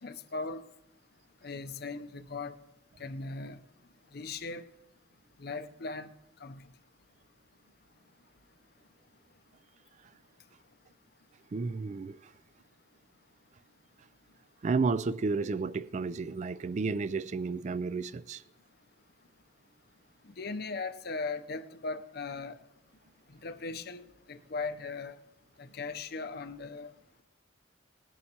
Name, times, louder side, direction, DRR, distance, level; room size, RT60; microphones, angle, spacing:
voice 1, 0.0-0.6 1.4-2.6 3.0-3.6 4.1-4.6 5.4-6.1 6.4-6.7 20.4-22.6 23.4-25.2 25.6-26.9, left 3 dB, 55° left, 0.6 m, -38 dB
voice 2, 11.5-12.2 14.6-18.4, right 4 dB, 40° right, 0.3 m, -32 dB
20.0 x 11.0 x 2.9 m
head